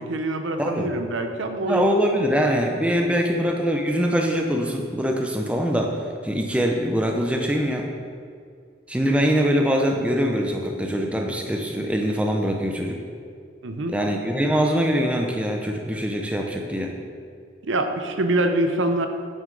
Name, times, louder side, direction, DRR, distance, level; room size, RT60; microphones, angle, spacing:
voice 1, 0.0-1.8 3.0-3.2 13.6-14.0 17.7-19.1, right 2 dB, 70° right, 6 dB, 0.6 m, -25 dB
voice 2, 0.6-0.9 1.7-6.0 6.2-7.9 8.9-13.0 13.9-16.9, equal, 5° right, 2 dB, 0.5 m, -23 dB
8.9 x 6.2 x 3.9 m, 2.2 s
head